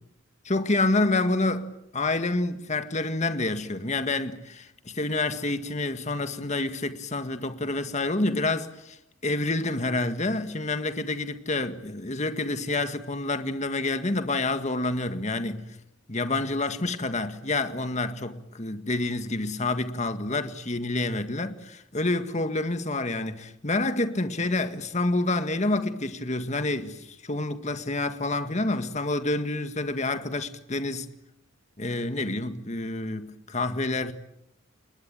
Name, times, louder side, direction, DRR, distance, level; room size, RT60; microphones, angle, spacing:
voice 1, 0.5-9.0 9.2-15.7 16.1-31.1 31.8-34.1, left 2 dB, 35° left, 1.8 m, -28 dB
29.0 x 22.0 x 9.0 m
head